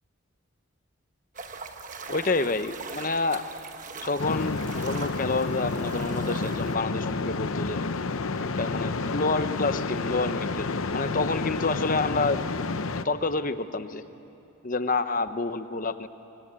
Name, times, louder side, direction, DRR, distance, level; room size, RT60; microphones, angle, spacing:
sound 1, 1.3-6.7, right 4 dB, 35° right, 1.2 m, -41 dB
voice 1, 2.1-3.4 3.9-7.8 8.6-12.4 13.0-14.0 14.6-16.1, left 3 dB, 40° left, 11 dB, 0.9 m, -28 dB
sound 2, 4.2-13.0, left 3 dB, 75° left, 0.8 m, -30 dB
25.5 x 24.0 x 8.7 m, 2.9 s
head